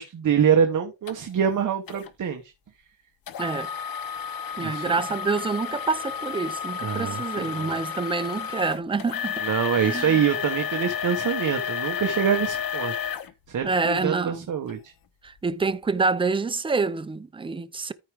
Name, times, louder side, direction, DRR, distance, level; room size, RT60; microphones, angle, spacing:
voice 1, 0.0-2.5 4.6-4.8 6.8-7.7 9.4-12.9 13.5-14.9, right 8 dB, 45° right, 1.0 m, -25 dB
sound 1, 1.1-1.2 1.9-2.1 3.3-14.1 14.7-14.8 15.4-15.5, left 8 dB, 50° left, 0.9 m, -31 dB
voice 2, 3.4-3.7 4.6-9.4 9.7-10.3 13.6-14.5 15.2-17.9, right 4 dB, 15° right, 0.3 m, -27 dB
13.5 x 4.5 x 3.5 m
wide cardioid pair, 175°, 44 cm